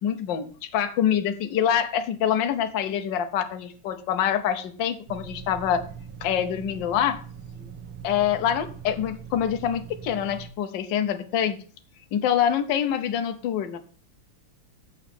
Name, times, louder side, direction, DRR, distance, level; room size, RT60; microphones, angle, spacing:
voice 1, 0.0-5.8 6.2-7.2 8.0-11.6 12.1-13.8, left 9 dB, 65° left, 8 dB, 1.4 m, -25 dB
sound 1, 5.1-10.5, right 7 dB, 85° right, 1.8 m, -41 dB
7.3 x 5.5 x 6.9 m, 0.42 s
omnidirectional pair, 2.4 m